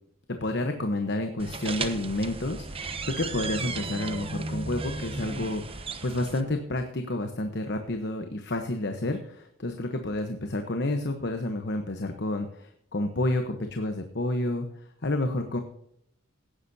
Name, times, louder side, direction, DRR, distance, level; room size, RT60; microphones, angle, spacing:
voice 1, 0.4-14.7 15.0-15.6, left 1 dB, 55° left, 6 dB, 1.1 m, -30 dB
sound 1, 1.4-6.4, right 3 dB, 25° right, 0.9 m, -35 dB
17.5 x 10.0 x 2.8 m, 0.71 s
head